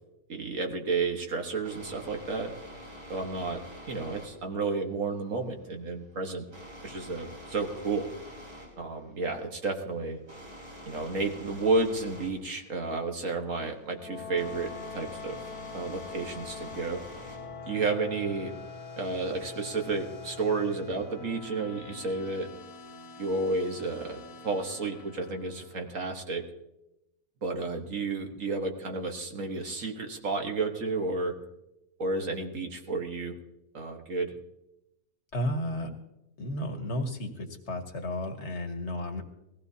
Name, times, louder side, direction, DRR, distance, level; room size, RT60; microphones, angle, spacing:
voice 1, 0.3-2.5 3.1-6.5 6.8-8.1 8.8-10.2 10.9-15.4 15.7-17.0 17.7-18.5 19.0-22.5 23.2-24.2 24.4-26.4 27.4-31.4 32.0-33.4 33.7-34.3, right 3 dB, 50° right, 3 dB, 1.6 m, -31 dB
sound 1, 1.1-17.6, equal, 80° right, 5.1 m, -47 dB
sound 2, 13.7-26.1, left 4 dB, 60° left, 1.5 m, -44 dB
voice 2, 35.3-35.9 36.4-39.2, left 1 dB, 45° left, 4 dB, 1.6 m, -33 dB
20.5 x 15.5 x 2.8 m, 0.90 s
omnidirectional pair, 1.9 m